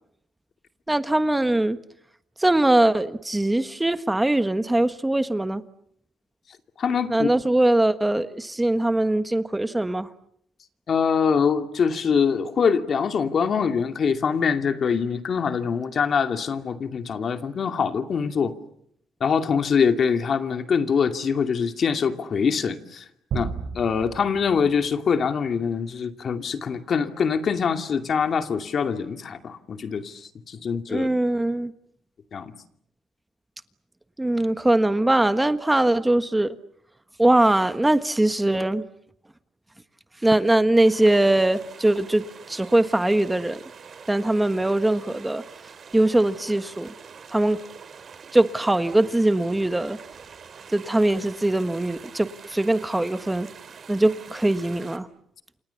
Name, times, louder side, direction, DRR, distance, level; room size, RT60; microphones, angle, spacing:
voice 1, 0.9-1.8 2.4-5.6 7.1-10.1 30.9-31.7 34.2-36.5 37.2-38.8 40.2-43.6 44.1-45.4 45.9-46.9 47.3-47.6 48.3-50.0 50.7-53.5 53.9-55.1, right 1 dB, 10° right, 11 dB, 1.4 m, -21 dB
voice 2, 6.8-7.3 10.9-18.5 19.2-23.0 23.3-31.1 32.3-32.5, left 6 dB, 50° left, 7 dB, 2.5 m, -24 dB
sound 1, 23.3-25.8, right 6 dB, 70° right, 5.6 m, -35 dB
sound 2, 40.8-55.0, right 6 dB, 50° right, 3.7 m, -45 dB
29.0 x 27.0 x 7.1 m, 0.72 s
cardioid pair, 90°, 0 cm